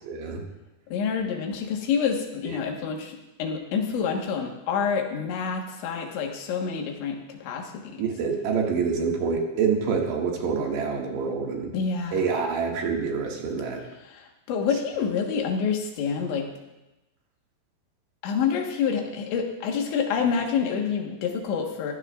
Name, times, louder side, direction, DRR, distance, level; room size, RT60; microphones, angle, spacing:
voice 1, 0.0-0.4 8.0-11.7 12.1-13.8, right 5 dB, 75° right, 0 dB, 4.0 m, -26 dB
voice 2, 0.9-8.0 11.7-12.4 14.1-16.5 18.2-21.9, left 6 dB, 90° left, 2 dB, 3.9 m, -27 dB
22.0 x 15.5 x 2.5 m, 0.99 s
omnidirectional pair, 5.1 m